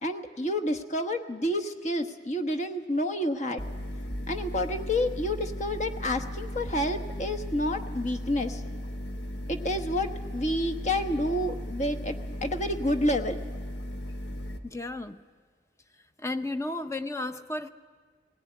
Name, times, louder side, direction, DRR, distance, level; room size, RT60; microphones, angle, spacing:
voice 1, 0.0-3.6 4.3-8.6 9.5-12.2 12.4-13.4, left 1 dB, 40° left, 7 dB, 1.2 m, -29 dB
sound 1, 3.6-14.6, equal, 70° left, 1.2 m, -36 dB
voice 2, 14.6-15.2 16.2-17.7, left 2 dB, 15° left, 9 dB, 0.7 m, -33 dB
19.0 x 17.5 x 9.7 m, 1.5 s
head